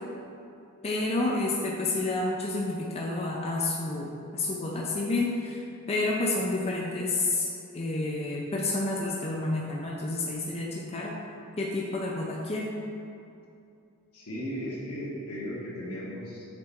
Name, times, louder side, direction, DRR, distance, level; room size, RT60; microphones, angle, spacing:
voice 1, 0.8-4.1 4.3-11.1 11.6-12.7, left 2 dB, 30° left, -3 dB, 0.5 m, -29 dB
voice 2, 14.1-16.5, equal, 80° left, -5 dB, 1.4 m, -36 dB
6.6 x 4.2 x 3.5 m, 2.6 s
head